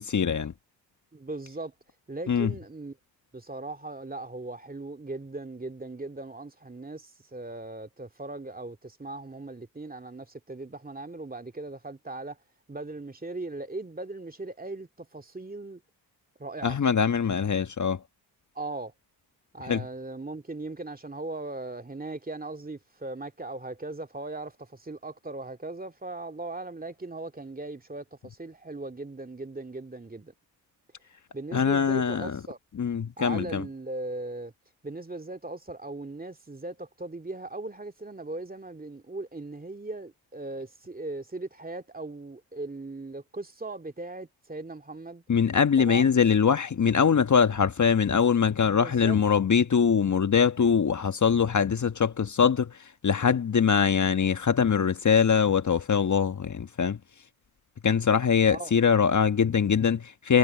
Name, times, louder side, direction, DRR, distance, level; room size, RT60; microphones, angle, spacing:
voice 1, 0.1-0.5 2.3-2.5 16.6-18.0 19.7-19.8 31.5-32.4 32.8-33.6 45.3-52.7 53.0-57.0 57.8-60.4, left 6 dB, 40° left, 1.5 m, -23 dB
voice 2, 1.1-1.7 2.1-3.0 3.3-12.4 12.7-15.8 16.4-16.8 18.5-18.9 19.5-30.3 31.3-32.6 33.2-34.5 34.8-45.2 45.8-46.1 48.6-49.2 58.5-58.7, right 2 dB, 20° right, 2.4 m, -38 dB
hypercardioid pair, 50°, 45 cm